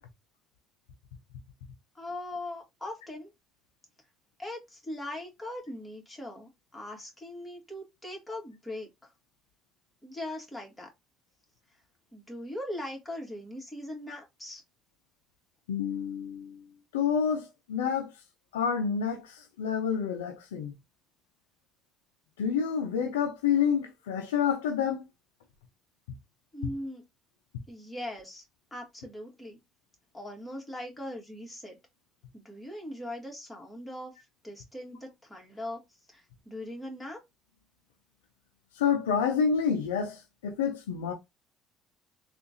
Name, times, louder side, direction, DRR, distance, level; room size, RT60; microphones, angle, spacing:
voice 1, 1.9-3.3 4.4-9.1 10.0-10.9 12.1-14.6 26.5-27.0 27.7-28.4 28.7-29.6 30.1-31.8 32.3-34.2 34.4-37.2, left 1 dB, 10° left, 1.9 m, -40 dB
voice 2, 15.7-16.7 16.9-18.1 18.5-20.7 22.4-25.1 38.8-41.1, left 7 dB, 85° left, 0.5 m, -28 dB
3.6 x 2.5 x 2.7 m
hypercardioid pair, 65°, 0 cm